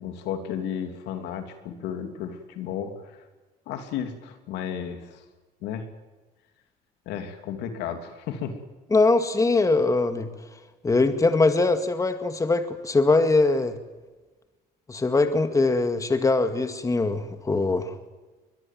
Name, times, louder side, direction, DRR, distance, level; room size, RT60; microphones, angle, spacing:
voice 1, 0.0-2.9 3.7-5.2 5.6-5.9 7.1-8.6, left 8 dB, 90° left, 7 dB, 3.0 m, -33 dB
voice 2, 8.9-10.3 10.8-13.8 14.9-17.9, left 3 dB, 20° left, 8 dB, 2.0 m, -22 dB
22.5 x 21.5 x 7.6 m, 1.2 s
cardioid pair, 110°, 17 cm